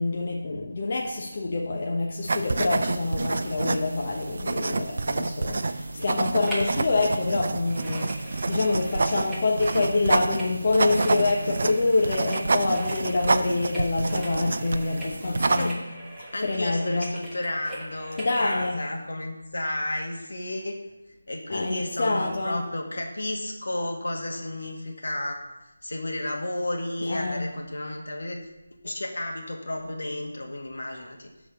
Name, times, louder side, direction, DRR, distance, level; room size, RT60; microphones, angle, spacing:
voice 1, 0.0-15.8 16.4-17.1 18.2-18.9 21.5-22.7 27.0-27.5, left 3 dB, 45° left, -2 dB, 1.1 m, -26 dB
sound 1, 2.2-15.7, right 3 dB, 55° right, 0.5 m, -28 dB
sound 2, 6.4-6.8 7.1-18.4 18.9-19.0, right 1 dB, 5° right, 1.2 m, -41 dB
voice 2, 15.0-15.8 16.3-20.8 21.3-25.4 25.8-28.4 28.8-31.3, left 1 dB, 70° left, 1 dB, 1.8 m, -32 dB
11.5 x 4.1 x 5.3 m, 1.0 s
figure-of-eight pair, 165°, 0 cm